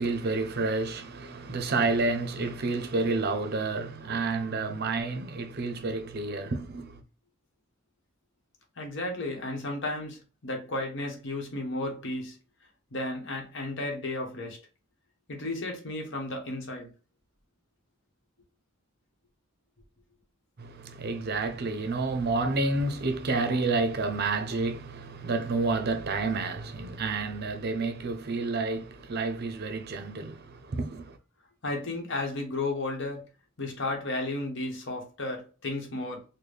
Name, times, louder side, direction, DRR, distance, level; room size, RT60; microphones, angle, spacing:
voice 1, 0.0-7.0 20.6-31.2, right 3 dB, 50° right, 0.6 m, -29 dB
voice 2, 8.8-12.4 12.9-14.6 15.3-16.9 31.6-33.3 33.6-36.2, left 2 dB, 60° left, 1.1 m, -33 dB
4.0 x 2.2 x 3.3 m
head